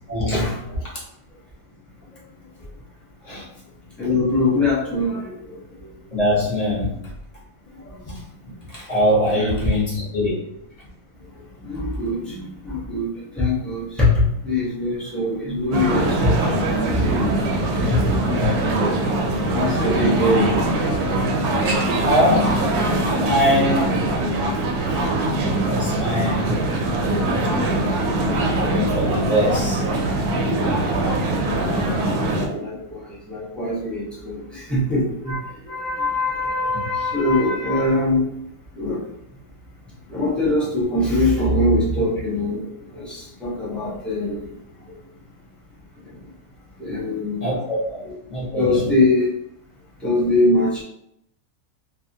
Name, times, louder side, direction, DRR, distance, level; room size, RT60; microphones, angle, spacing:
voice 1, 0.1-0.5 3.2-3.4 6.1-6.9 8.1-10.4 18.1-18.5 22.0-22.6 23.2-24.0 25.6-26.6 28.6-29.8 47.4-47.8 48.3-48.9, equal, 30° left, -6 dB, 0.9 m, -22 dB
voice 2, 4.0-5.3 9.3-9.7 11.7-13.1 13.4-14.1 14.4-17.1 17.4-17.5 17.9-18.0 19.5-20.6 23.4-23.5 25.0-25.1 32.3-33.0 33.3-34.4 34.7-35.4 35.7-38.2 38.8-39.0 40.1-42.6 42.9-44.4 46.8-47.4 48.0-48.1 48.6-49.2 50.0-50.8, left 2 dB, ahead, -7 dB, 0.4 m, -22 dB
sound 1, 15.7-32.5, right 1 dB, 90° right, 1.1 m, -22 dB
2.7 x 2.4 x 2.6 m, 0.74 s
omnidirectional pair, 1.6 m